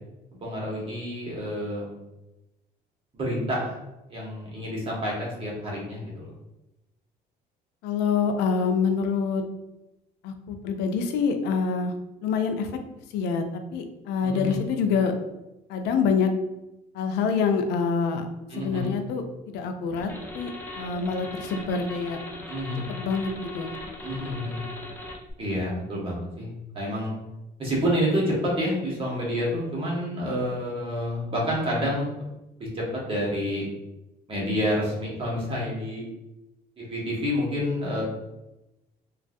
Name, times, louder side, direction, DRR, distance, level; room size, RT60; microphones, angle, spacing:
voice 1, 0.3-2.0 3.1-3.8 4.1-6.3 14.2-14.5 18.5-19.0 22.5-22.9 24.0-24.6 25.4-27.1 27.6-32.1 32.6-33.6 34.3-36.0 36.8-38.0, equal, 30° right, -5 dB, 1.3 m, -28 dB
voice 2, 7.8-9.4 10.2-11.9 12.2-12.7 13.1-13.4 13.7-15.1 15.7-16.3 16.9-18.3 18.6-20.1 20.3-22.2 22.9-23.3 23.5-23.8, left 5 dB, 85° left, 6 dB, 0.4 m, -26 dB
sound 1, 20.0-25.3, left 2 dB, 10° left, 0.5 m, -39 dB
3.0 x 2.4 x 2.6 m, 0.95 s
cardioid pair, 110°, 17 cm